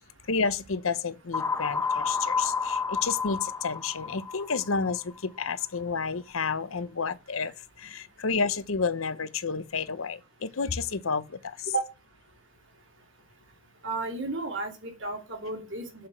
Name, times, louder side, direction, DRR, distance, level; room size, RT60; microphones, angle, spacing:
voice 1, 0.3-7.5 7.8-11.7, left 5 dB, 80° left, 0.9 m, -30 dB
sound 1, 1.3-5.2, left 5 dB, 10° left, 0.4 m, -30 dB
voice 2, 13.8-16.1, right 3 dB, 65° right, 2.7 m, -33 dB
6.8 x 5.9 x 6.7 m
head